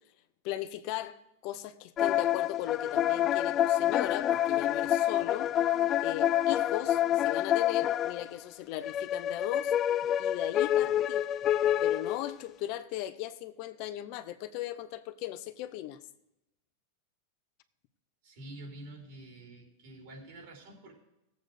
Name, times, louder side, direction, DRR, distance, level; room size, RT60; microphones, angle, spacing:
voice 1, 0.4-5.5 6.0-9.7 10.2-11.3 11.8-16.0, left 13 dB, 50° left, 0.8 m, -37 dB
sound 1, 2.0-8.3 8.8-12.3, left 11 dB, 30° left, 0.3 m, -27 dB
voice 2, 18.2-20.9, right 1 dB, 65° right, 4.4 m, -47 dB
16.5 x 8.0 x 5.1 m
supercardioid pair, 130°, 0 cm